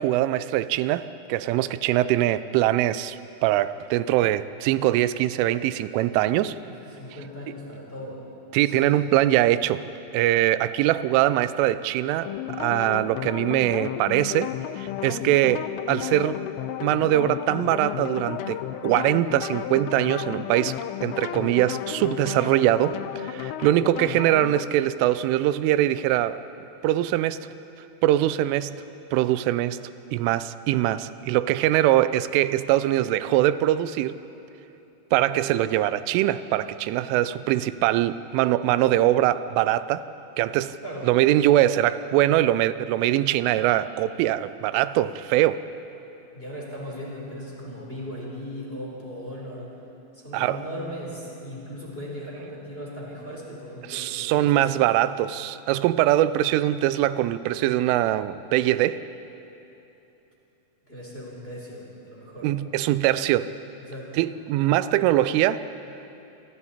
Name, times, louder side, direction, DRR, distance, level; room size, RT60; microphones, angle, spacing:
voice 1, 0.0-6.6 8.5-9.8 10.1-12.3 12.6-14.5 14.8-16.4 16.8-20.8 21.0-26.4 26.8-27.4 28.0-28.8 29.1-29.8 30.1-34.2 35.1-40.0 40.4-40.8 41.1-45.7 50.3-50.6 53.9-59.0 62.4-63.5 64.2-65.6, right 14 dB, 90° right, 14 dB, 3.1 m, -22 dB
voice 2, 6.6-8.2 8.6-9.0 40.8-41.1 46.3-49.7 50.1-54.6 60.9-62.5 63.8-64.2, equal, 15° left, -3 dB, 3.5 m, -38 dB
sound 1, 12.2-24.6, left 12 dB, 85° left, 3.1 m, -33 dB
28.0 x 25.0 x 4.3 m, 2.9 s
omnidirectional pair, 5.5 m